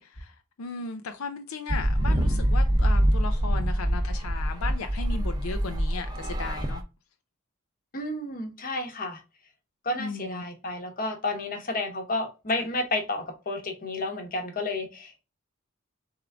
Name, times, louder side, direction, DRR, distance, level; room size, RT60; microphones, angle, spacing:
voice 1, 0.0-6.8 10.0-10.4, left 4 dB, 80° left, 0.5 m, -36 dB
sound 1, 1.7-6.8, equal, 20° right, 0.6 m, -25 dB
voice 2, 7.9-9.2 9.8-15.2, left 2 dB, 40° left, 1.0 m, -31 dB
3.6 x 3.6 x 3.4 m
head